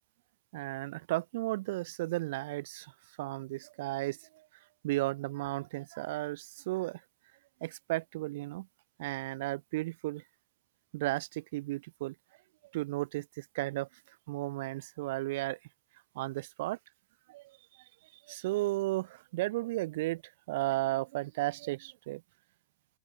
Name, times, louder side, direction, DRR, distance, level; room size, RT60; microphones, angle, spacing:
voice 1, 0.5-2.9 3.2-4.5 4.8-7.0 7.6-8.7 9.0-10.2 10.9-12.1 12.7-15.6 16.1-16.8 17.3-17.8 18.1-20.2 20.5-22.2, right 18 dB, 50° right, 0.4 m, -34 dB
figure-of-eight pair, 90°, 0 cm